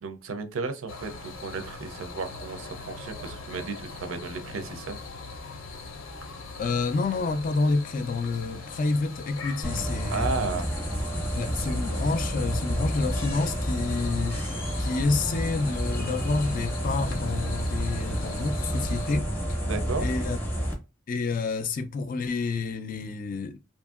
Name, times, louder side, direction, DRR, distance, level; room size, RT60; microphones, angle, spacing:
voice 1, 0.0-5.0 10.1-10.7 11.5-11.7 19.6-20.1, right 4 dB, 75° right, 0.5 m, -34 dB
sound 1, 0.9-19.2, left 3 dB, 75° left, 0.6 m, -41 dB
voice 2, 6.6-10.3 11.3-14.5 14.8-19.6 20.0-20.4 21.1-23.6, left 3 dB, 40° left, 0.3 m, -29 dB
sound 2, 9.6-20.7, equal, 10° left, 0.6 m, -30 dB
2.7 x 2.6 x 2.3 m
head